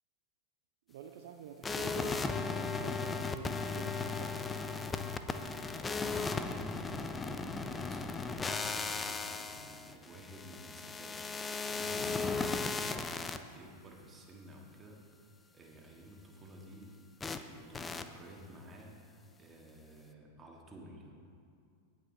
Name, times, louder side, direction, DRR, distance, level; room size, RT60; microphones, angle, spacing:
voice 1, 0.9-4.6, right 8 dB, 55° right, 5 dB, 0.5 m, -47 dB
sound 1, 1.6-13.4 17.2-17.4 17.7-18.0, left 4 dB, 15° left, 0.5 m, -36 dB
voice 2, 6.0-11.3 11.8-15.0 15.5-17.0 17.3-19.0 19.4-21.2, equal, 20° right, 0 dB, 1.6 m, -51 dB
16.5 x 5.6 x 3.8 m, 2.3 s
figure-of-eight pair, 90°, 0 cm